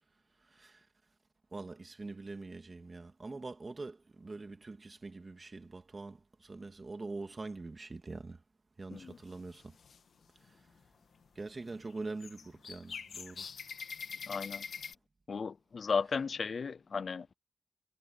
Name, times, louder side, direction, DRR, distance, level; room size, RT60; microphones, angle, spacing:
voice 1, 0.5-0.8 1.5-8.4 8.8-9.8 11.4-13.5, right 3 dB, 30° right, 2.3 m, -44 dB
sound 1, 9.0-10.0 10.4-10.9 11.2-14.9, left 6 dB, 70° left, 1.8 m, -45 dB
voice 2, 14.3-14.6 15.3-17.3, left 5 dB, 50° left, 0.3 m, -35 dB
wide cardioid pair, 105°, 0 cm